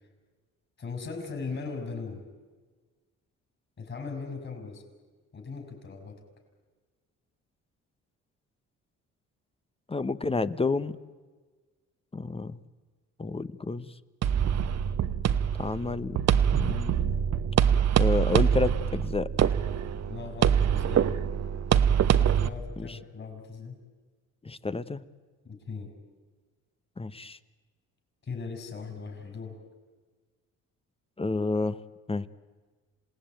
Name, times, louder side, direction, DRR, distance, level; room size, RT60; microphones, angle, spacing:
voice 1, 0.8-2.2 3.8-4.8 5.3-6.2 20.1-21.1 22.1-23.8 25.4-25.9 28.2-29.6, left 4 dB, 40° left, 4 dB, 6.0 m, -39 dB
voice 2, 9.9-11.0 12.1-12.6 13.2-13.9 15.6-16.2 16.5-17.2 18.0-19.3 22.8-23.0 24.4-25.0 27.0-27.4 31.2-31.8 32.1-32.3, left 3 dB, 20° left, 14 dB, 0.9 m, -30 dB
sound 1, 14.2-22.5, right 8 dB, 60° right, 1.0 m, -24 dB
27.0 x 18.0 x 9.1 m, 1.4 s
cardioid pair, 90°, 30 cm